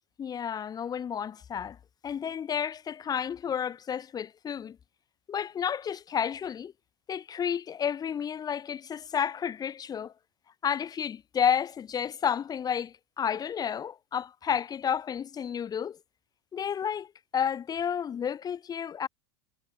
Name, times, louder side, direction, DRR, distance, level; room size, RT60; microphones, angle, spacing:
voice 1, 0.2-1.8 2.0-4.8 5.3-6.7 7.1-10.1 10.6-16.0 16.5-17.1 17.3-19.1, left 8 dB, 30° left, 2.2 m, -31 dB
hypercardioid pair, 95°, 13 cm